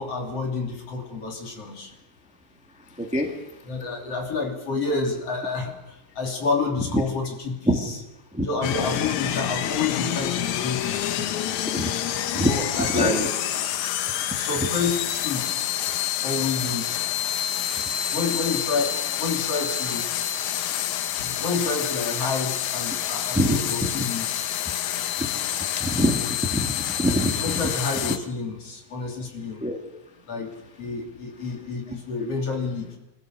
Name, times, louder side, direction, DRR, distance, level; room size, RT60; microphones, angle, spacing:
voice 1, 0.0-1.9 3.7-8.0 8.4-11.5 12.4-13.2 14.4-15.5 16.2-17.1 18.1-20.0 21.2-24.4 27.4-29.6 30.3-30.5 30.8-32.9, left 4 dB, 55° left, 1 dB, 4.1 m, -29 dB
voice 2, 3.0-3.3 7.7-7.8 8.3-8.4 11.7-11.9 12.3-13.3 23.3-23.9 25.2-25.3 25.8-27.4 29.6-29.8, equal, 5° right, 2 dB, 1.5 m, -24 dB
sound 1, 8.6-28.2, left 11 dB, 80° left, 2.3 m, -28 dB
24.5 x 16.0 x 6.6 m, 0.95 s
omnidirectional pair, 3.3 m